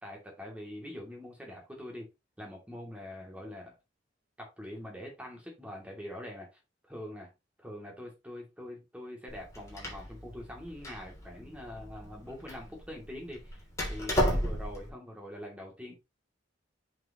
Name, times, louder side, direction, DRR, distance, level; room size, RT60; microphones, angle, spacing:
voice 1, 0.0-2.1 2.4-3.8 4.4-6.5 6.9-7.3 7.6-15.9, left 1 dB, 5° right, -1 dB, 2.6 m, -44 dB
Door, 9.3-14.9, equal, 15° left, 3.0 m, -34 dB
7.9 x 5.2 x 3.0 m, 0.23 s
head